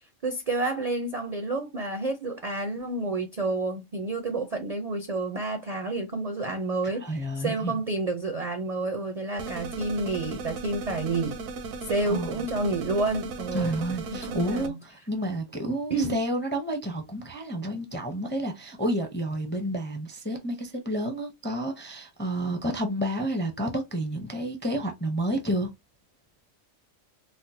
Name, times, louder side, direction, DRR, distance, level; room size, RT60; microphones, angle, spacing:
voice 1, 0.2-11.4 11.9-13.8 14.1-14.8 15.9-16.2, right 2 dB, 50° right, 0.4 m, -29 dB
voice 2, 6.8-7.7 12.1-12.5 13.5-25.7, right 1 dB, 15° left, 0.4 m, -30 dB
sound 1, 9.4-14.7, right 3 dB, 85° right, 1.0 m, -36 dB
4.3 x 2.0 x 2.6 m
omnidirectional pair, 1.3 m